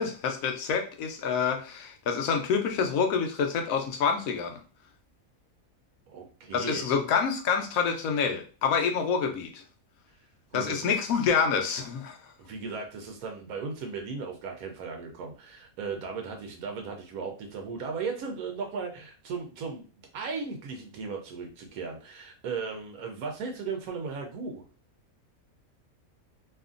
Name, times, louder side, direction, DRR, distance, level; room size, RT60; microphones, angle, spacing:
voice 1, 0.0-4.6 6.5-9.6 10.5-12.2, left 6 dB, 75° left, 4 dB, 1.0 m, -27 dB
voice 2, 6.1-6.8 10.5-10.9 12.4-19.8 20.1-24.6, right 5 dB, 85° right, 3 dB, 1.0 m, -36 dB
2.8 x 2.4 x 2.4 m, 0.35 s
omnidirectional pair, 1.5 m